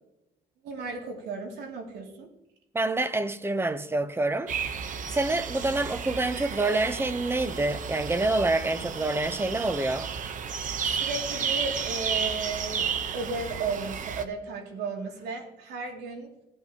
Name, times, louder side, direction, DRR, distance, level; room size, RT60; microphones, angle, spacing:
voice 1, 0.6-2.3 10.9-16.3, right 4 dB, 75° right, 2.7 m, -34 dB
voice 2, 2.7-4.5 5.1-10.1, right 2 dB, 15° right, 0.8 m, -27 dB
sound 1, 4.5-14.2, right 6 dB, 50° right, 0.9 m, -32 dB
17.5 x 8.3 x 2.9 m
cardioid pair, 110°, 17 cm